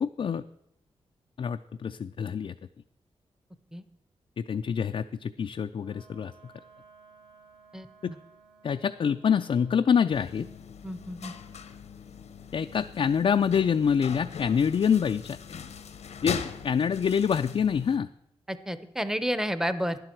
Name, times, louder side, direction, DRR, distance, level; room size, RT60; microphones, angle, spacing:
voice 1, 0.0-0.4 1.4-2.5 4.4-6.5 8.0-8.1 8.6-10.5 12.5-15.4 16.2-18.1, left 7 dB, 55° left, 7 dB, 0.4 m, -26 dB
Wind instrument woodwind instrument, 5.7-10.5, right 4 dB, 60° right, 2.4 m, -57 dB
voice 2, 7.7-8.2 10.8-11.3 18.5-20.0, equal, 5° right, 12 dB, 0.8 m, -31 dB
sound 1, 10.1-18.0, left 6 dB, 85° left, 0.9 m, -40 dB
11.5 x 10.5 x 4.5 m, 0.79 s
cardioid pair, 75°, 11 cm